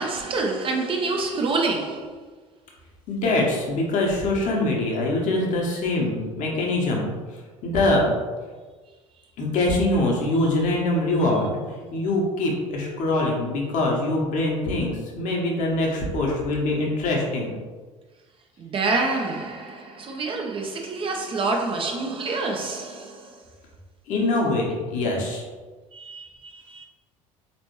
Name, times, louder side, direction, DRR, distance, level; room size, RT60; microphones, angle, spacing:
voice 1, 0.0-2.2 18.6-23.4 25.9-26.8, right 3 dB, 30° right, 0.6 m, -27 dB
voice 2, 3.1-7.2 7.6-8.1 9.4-11.6 11.9-17.5 24.1-25.4, left 2 dB, 50° left, 1.0 m, -23 dB
4.2 x 3.0 x 3.0 m
figure-of-eight pair, 60°, 17 cm